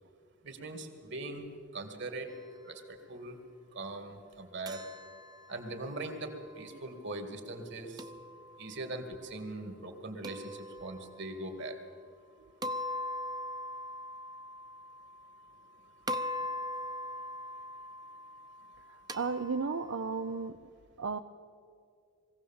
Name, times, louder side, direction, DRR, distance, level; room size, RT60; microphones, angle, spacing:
voice 1, 0.4-2.3 2.6-3.4 3.7-4.8 5.5-8.1 8.6-11.8, right 2 dB, 60° right, 6 dB, 2.2 m, -41 dB
sound 1, 4.7-6.8 8.0-9.0 10.2-11.4 12.6-15.7 16.1-20.5, left 1 dB, 20° right, 0.7 m, -41 dB
voice 2, 18.9-20.6 21.0-21.2, right 4 dB, 80° right, 7 dB, 0.6 m, -34 dB
21.5 x 16.5 x 7.3 m, 2.3 s
head